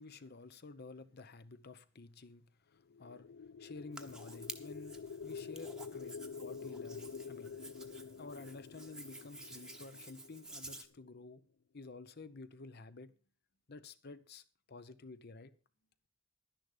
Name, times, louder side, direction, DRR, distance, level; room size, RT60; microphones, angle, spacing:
voice 1, 0.0-3.3 3.6-7.6 8.2-11.5 11.7-13.1 13.7-15.6, left 3 dB, 50° left, 0.8 m, -51 dB
sound 1, 2.9-11.0, left 5 dB, 85° left, 0.5 m, -48 dB
Hands, 3.9-10.8, right 2 dB, 5° right, 1.0 m, -52 dB
11.5 x 10.5 x 4.9 m
head